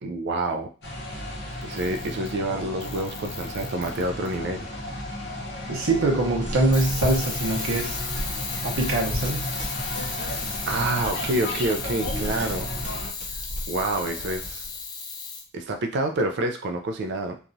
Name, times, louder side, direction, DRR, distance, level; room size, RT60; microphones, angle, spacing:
voice 1, 0.0-0.7 1.6-4.7 10.7-12.7 13.7-14.7 15.5-17.4, right 2 dB, 55° right, 5 dB, 0.3 m, -28 dB
sound 1, 0.8-13.1, left 1 dB, 55° left, 0.8 m, -34 dB
Camera, 1.6-2.4 2.8-4.3 6.7-15.4, left 5 dB, 20° left, 0.3 m, -35 dB
voice 2, 5.7-8.0 8.6-9.5, right 2 dB, 90° right, 0 dB, 0.7 m, -23 dB
sound 2, 6.4-14.8, equal, 35° right, 0.8 m, -36 dB
2.9 x 2.3 x 2.6 m, 0.37 s
head